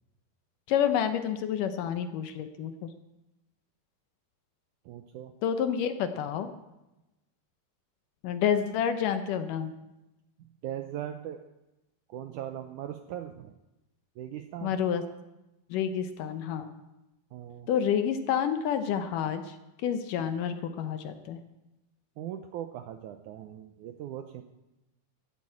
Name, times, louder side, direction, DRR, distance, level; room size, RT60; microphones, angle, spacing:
voice 1, 0.7-2.9 5.4-6.5 8.2-9.7 14.6-15.0 15.7-16.7 17.7-19.6 19.8-21.4, left 8 dB, 75° left, 9 dB, 2.2 m, -29 dB
voice 2, 4.9-5.3 10.6-11.4 12.1-13.5 14.2-14.8 17.3-17.7 22.2-24.4, right 11 dB, 80° right, 6 dB, 1.8 m, -39 dB
14.5 x 8.4 x 8.5 m, 0.96 s
omnidirectional pair, 4.3 m